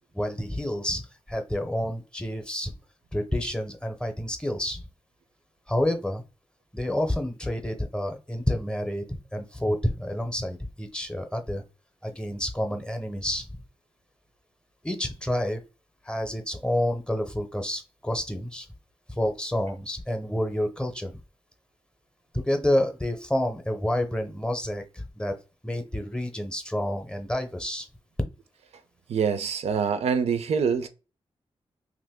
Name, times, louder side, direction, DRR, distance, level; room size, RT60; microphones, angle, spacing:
voice 1, 0.1-1.0 1.3-2.7 3.1-4.8 5.7-6.2 6.7-11.6 12.0-13.5 14.8-15.6 16.0-18.7 19.1-21.1 22.3-25.3 25.6-27.9, left 1 dB, 10° left, 0.6 m, -29 dB
voice 2, 29.1-30.9, right 6 dB, 85° right, 0.4 m, -25 dB
2.9 x 2.5 x 3.5 m
wide cardioid pair, 105°, 11 cm